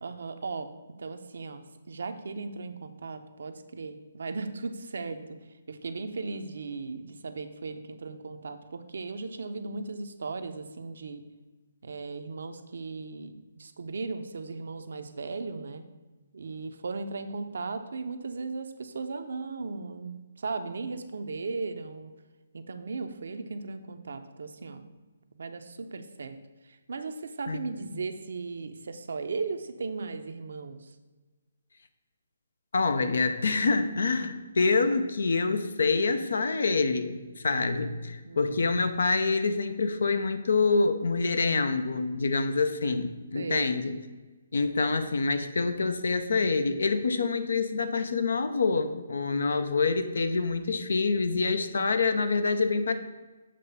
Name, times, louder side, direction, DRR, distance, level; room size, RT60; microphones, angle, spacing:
voice 1, 0.0-0.7 1.0-5.4 5.7-11.2 11.8-15.8 16.3-22.1 22.5-24.8 25.3-26.4 26.6-30.9 38.2-38.6 43.3-43.7, right 4 dB, 70° right, 8 dB, 0.6 m, -37 dB
voice 2, 32.7-43.9 44.5-52.9, left 4 dB, 75° left, 10 dB, 0.7 m, -26 dB
7.7 x 3.3 x 5.5 m, 1.2 s
hypercardioid pair, 145°, 0 cm